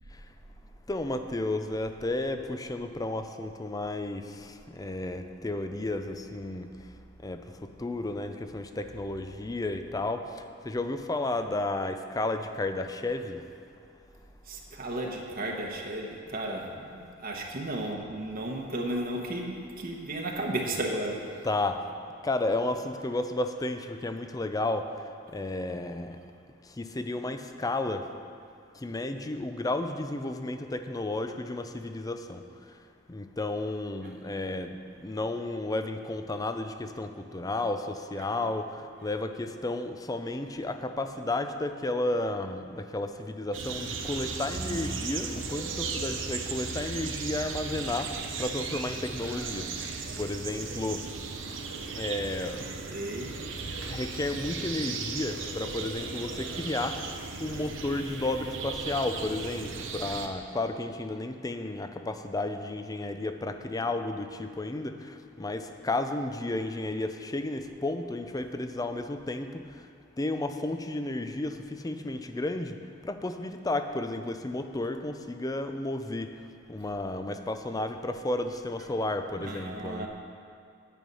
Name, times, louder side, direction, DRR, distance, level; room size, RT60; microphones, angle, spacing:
voice 1, 0.9-6.7 7.2-10.2 10.6-13.4 21.4-21.8 22.2-24.9 25.3-26.2 26.8-28.0 28.8-32.4 33.1-38.7 39.0-48.1 48.4-49.7 50.2-51.1 51.9-52.7 53.9-57.0 57.4-69.6 70.2-72.8 73.0-76.3 76.7-80.1, left 2 dB, 20° left, 7 dB, 0.5 m, -32 dB
voice 2, 14.5-21.3 44.6-45.0 52.8-53.3 79.4-80.1, right 1 dB, 50° right, 0 dB, 1.1 m, -34 dB
sound 1, 43.5-60.3, right 4 dB, 85° right, 0.9 m, -36 dB
9.2 x 8.8 x 5.5 m, 2.4 s
head